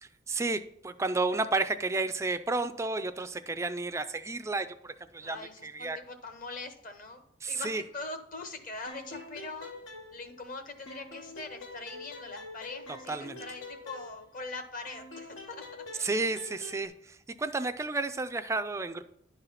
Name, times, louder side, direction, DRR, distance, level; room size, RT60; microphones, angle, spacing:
voice 1, 0.0-6.0 7.4-7.8 13.1-13.4 16.0-19.0, right 3 dB, 15° right, 11 dB, 0.3 m, -32 dB
voice 2, 5.2-9.7 10.1-15.6 15.9-16.1, left 3 dB, 45° left, 7 dB, 1.0 m, -42 dB
sound 1, 8.9-10.6 10.9-14.5 14.9-16.9, left 2 dB, 85° left, 1.2 m, -46 dB
10.5 x 4.0 x 5.6 m, 0.76 s
head